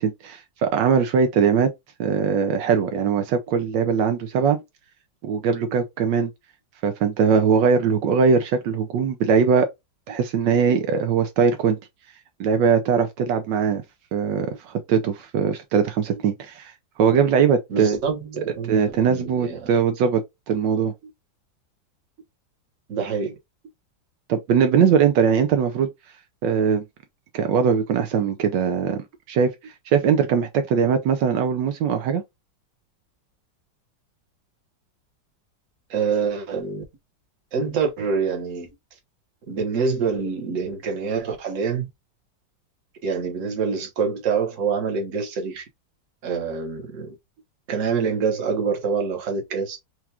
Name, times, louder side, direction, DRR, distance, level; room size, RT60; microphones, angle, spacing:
voice 1, 0.0-1.7 2.0-4.6 5.2-6.3 6.8-9.7 10.1-11.8 12.4-13.8 14.1-18.0 18.7-20.9 24.3-25.9 26.4-26.8 27.3-32.2, right 6 dB, 80° right, 1.3 m, -21 dB
voice 2, 17.7-19.7 22.9-23.3 35.9-36.8 37.5-38.7 39.5-41.9 43.0-45.6 46.2-47.1 47.7-49.8, right 5 dB, 50° right, 1.3 m, -26 dB
4.6 x 2.4 x 2.8 m
omnidirectional pair, 2.0 m